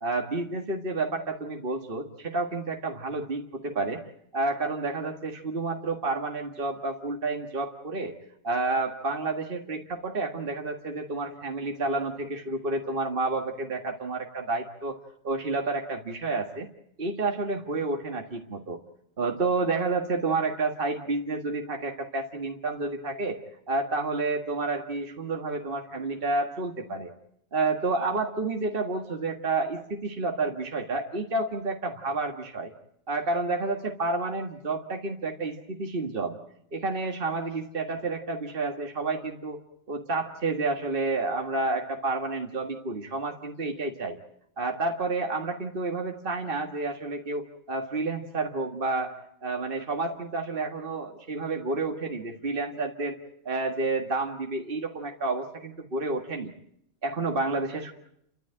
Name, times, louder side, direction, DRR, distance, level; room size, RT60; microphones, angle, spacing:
voice 1, 0.0-4.0 4.3-8.1 8.4-15.0 15.2-16.7 17.0-18.8 19.2-23.4 23.7-27.1 27.5-32.7 33.1-36.4 36.7-39.6 39.9-44.2 44.6-49.1 49.4-53.2 53.5-56.5 57.0-57.9, right 3 dB, 45° right, 3 dB, 2.0 m, -30 dB
30.0 x 13.5 x 8.9 m, 0.75 s
omnidirectional pair, 1.3 m